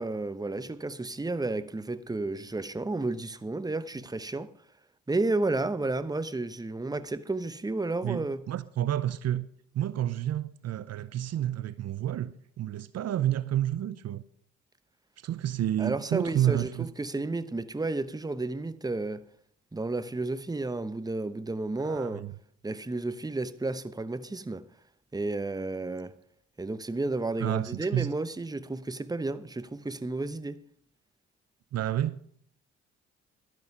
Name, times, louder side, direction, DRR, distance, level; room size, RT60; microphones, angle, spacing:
voice 1, 0.0-4.5 5.1-8.4 15.8-19.2 19.7-22.3 22.6-24.6 25.1-26.1 26.6-30.6, right 2 dB, 10° right, 0.9 m, -32 dB
voice 2, 8.0-9.5 9.7-12.3 12.6-14.2 15.2-16.9 21.8-22.3 27.4-28.1 31.7-32.2, right 12 dB, 55° right, 0.6 m, -30 dB
12.0 x 11.0 x 5.6 m
supercardioid pair, 55°, 30 cm